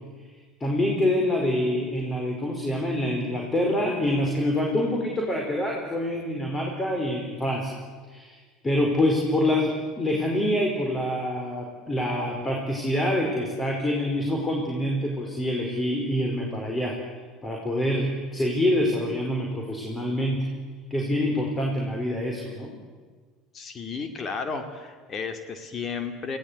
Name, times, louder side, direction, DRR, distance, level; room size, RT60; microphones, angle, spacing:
voice 1, 0.6-7.7 8.1-8.4 8.6-17.0 17.4-20.5 20.9-22.7, left 1 dB, 20° left, 1 dB, 4.7 m, -26 dB
voice 2, 23.5-26.4, left 5 dB, 40° left, 7 dB, 2.4 m, -33 dB
28.0 x 17.5 x 8.2 m, 1.5 s
hypercardioid pair, 70°, 0 cm